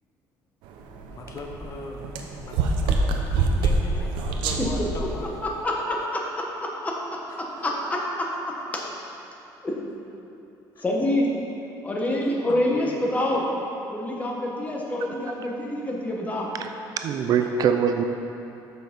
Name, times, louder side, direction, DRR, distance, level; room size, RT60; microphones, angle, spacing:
sound 1, 0.7-5.6, right 3 dB, 90° right, 0.7 m, -26 dB
voice 1, 1.1-5.4 7.3-7.4 8.5-8.9 10.8-10.9 12.2-13.0 17.4-17.5, left 3 dB, 40° left, 2 dB, 0.8 m, -39 dB
voice 2, 5.4-6.9 7.4-8.8 9.6-9.8 10.8-11.3 11.8-13.5 13.9-16.5, left 1 dB, 20° left, -1 dB, 1.2 m, -27 dB
voice 3, 17.0-18.0, right 7 dB, 50° right, 6 dB, 0.4 m, -23 dB
6.8 x 6.0 x 5.2 m, 2.9 s
cardioid pair, 125°, 8 cm